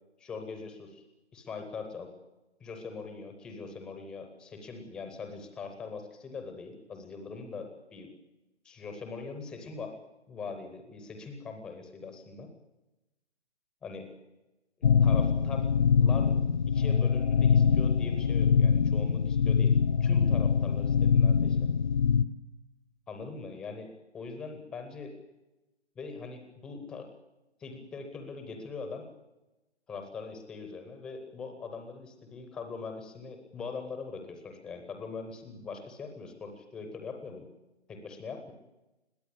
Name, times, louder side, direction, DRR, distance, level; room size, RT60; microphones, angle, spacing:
voice 1, 0.2-1.0 1.3-2.1 2.6-8.1 8.6-10.0 10.3-12.5 13.8-14.1 14.8-15.7 16.0-16.4 16.7-21.7 23.1-25.1 26.0-27.1 27.6-29.1 29.9-37.5 37.9-38.5, left 4 dB, ahead, 6 dB, 0.6 m, -42 dB
sound 1, 14.8-22.2, left 6 dB, 45° left, 0.7 m, -24 dB
21.5 x 15.5 x 8.3 m, 1.0 s
figure-of-eight pair, 150°, 33 cm